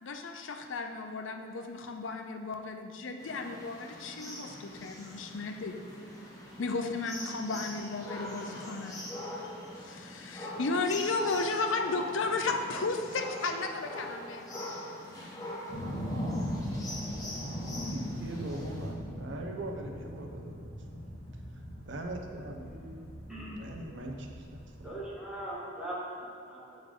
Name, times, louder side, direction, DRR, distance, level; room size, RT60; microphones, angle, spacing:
voice 1, 0.0-5.8 6.6-9.0 9.7-14.6, left 3 dB, 75° left, 5 dB, 0.6 m, -34 dB
sound 1, 3.2-18.9, left 1 dB, 20° left, 1.0 m, -43 dB
sound 2, 15.7-25.0, equal, 35° left, 1.9 m, -39 dB
voice 2, 17.9-20.7 21.9-22.7 23.6-24.5 24.8-25.0, right 1 dB, 65° right, 2 dB, 0.7 m, -40 dB
voice 3, 22.7-23.0 23.3-23.7 24.8-26.8, right 1 dB, 5° right, -8 dB, 1.7 m, -41 dB
8.9 x 5.3 x 3.7 m, 2.3 s
head